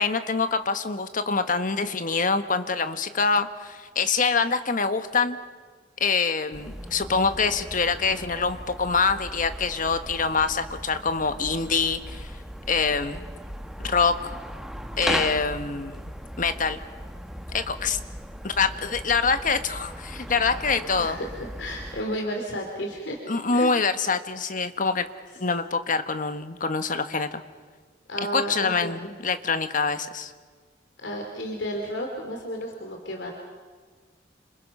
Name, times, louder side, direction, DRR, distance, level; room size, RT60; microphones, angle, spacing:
voice 1, 0.0-5.4 6.0-12.3 12.7-13.3 13.8-14.3 15.0-16.1 16.4-16.8 17.5-18.0 18.4-21.2 23.3-25.1 25.4-27.4 28.3-30.3, left 4 dB, 45° left, 9 dB, 1.4 m, -25 dB
sound 1, 6.5-22.0, equal, 5° right, 1.0 m, -37 dB
voice 2, 20.8-23.2 23.5-23.7 28.1-29.0 31.0-33.3, equal, 75° left, 2 dB, 3.2 m, -32 dB
30.0 x 27.0 x 5.6 m, 1.5 s
head